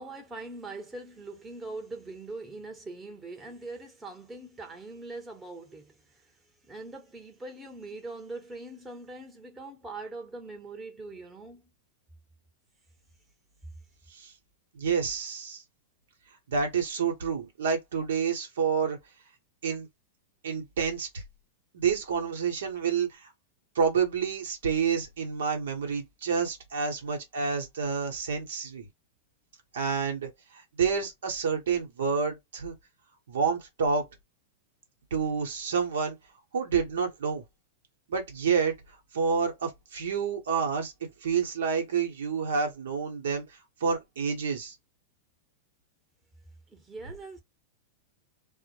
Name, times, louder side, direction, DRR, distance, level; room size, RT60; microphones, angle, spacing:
voice 1, 0.0-6.2 6.7-11.7 46.7-47.4, right 2 dB, 15° right, 0.9 m, -42 dB
voice 2, 14.7-15.6 16.5-19.0 19.6-19.9 20.4-21.2 21.7-23.3 23.7-28.9 29.7-32.7 33.3-34.0 35.1-36.2 36.5-37.4 38.1-38.7 39.1-40.9 41.2-43.4 43.8-44.7, right 6 dB, 75° right, 0.9 m, -29 dB
2.0 x 2.0 x 3.0 m
hypercardioid pair, 105°, 0 cm